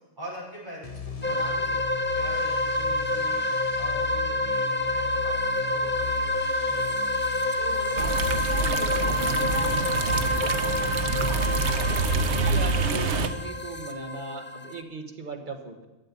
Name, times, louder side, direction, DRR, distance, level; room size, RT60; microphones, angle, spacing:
voice 1, 0.2-3.4 3.8-7.1 7.5-10.2, equal, 20° right, -7 dB, 5.6 m, -43 dB
sound 1, 0.8-13.3, left 6 dB, 35° left, 0.9 m, -38 dB
sound 2, 1.2-14.8, left 2 dB, 15° left, 0.5 m, -28 dB
sound 3, 8.0-13.3, right 4 dB, 80° right, 1.1 m, -27 dB
voice 2, 12.0-15.8, right 4 dB, 45° right, 4 dB, 1.7 m, -38 dB
13.0 x 7.7 x 9.8 m, 1.1 s
omnidirectional pair, 1.1 m